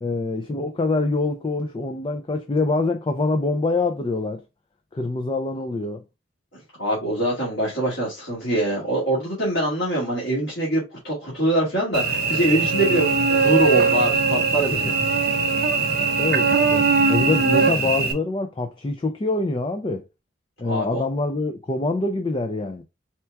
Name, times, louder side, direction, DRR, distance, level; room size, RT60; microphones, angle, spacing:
voice 1, 0.0-4.4 4.9-6.0 14.7-14.8 15.8-20.1 20.6-22.8, left 3 dB, 25° left, 0.4 m, -25 dB
voice 2, 6.8-14.9 20.6-21.0, right 1 dB, 55° left, 1.8 m, -24 dB
Cricket / Buzz, 11.9-18.1, right 4 dB, 50° right, 0.8 m, -20 dB
4.4 x 2.3 x 4.4 m
head